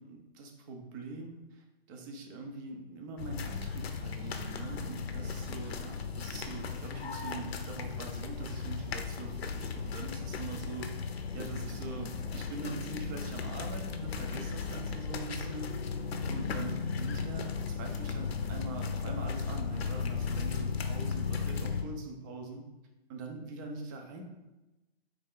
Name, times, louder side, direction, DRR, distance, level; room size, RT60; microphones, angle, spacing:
voice 1, 0.0-10.9 11.3-16.0 16.3-22.6 23.1-24.2, right 3 dB, 20° right, 2 dB, 0.4 m, -43 dB
sound 1, 3.2-21.8, left 5 dB, 75° left, 0.6 m, -36 dB
3.6 x 3.3 x 3.6 m, 1.0 s
hypercardioid pair, 135°, 31 cm